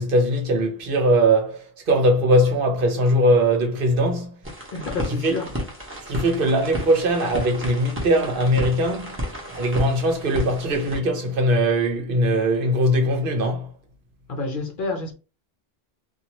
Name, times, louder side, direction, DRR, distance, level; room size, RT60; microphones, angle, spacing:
voice 1, 0.0-4.3 5.2-5.4 6.1-9.1 9.5-13.7, right 1 dB, 60° right, 0.9 m, -20 dB
sound 1, 4.4-11.0, equal, 15° right, 0.9 m, -32 dB
voice 2, 4.7-5.5 14.3-15.1, left 3 dB, 60° left, 0.8 m, -29 dB
2.7 x 2.4 x 2.9 m
omnidirectional pair, 1.0 m